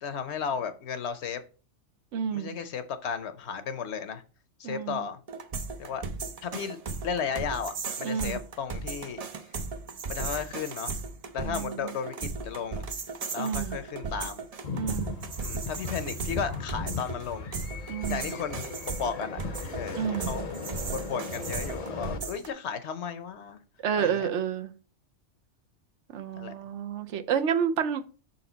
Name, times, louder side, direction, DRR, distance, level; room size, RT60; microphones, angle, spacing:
voice 1, 0.0-1.4 2.3-4.2 4.6-5.2 5.8-6.0 6.4-6.8 7.0-9.2 10.1-11.0 11.3-12.9 13.3-14.4 15.4-17.5 18.1-19.4 19.7-20.5 20.9-23.6 24.0-24.3 26.4-26.5, left 7 dB, 70° left, 1.0 m, -34 dB
voice 2, 2.1-2.5 4.6-5.0 8.0-8.4 11.4-11.9 13.4-13.8 14.7-15.2 17.9-18.3 19.9-20.3 23.8-24.7 26.1-28.0, right 8 dB, 75° right, 0.9 m, -30 dB
sound 1, 5.3-22.5, right 4 dB, 45° right, 0.5 m, -36 dB
sound 2, 14.6-22.2, left 4 dB, 45° left, 0.6 m, -37 dB
6.4 x 4.3 x 3.9 m
omnidirectional pair, 1.2 m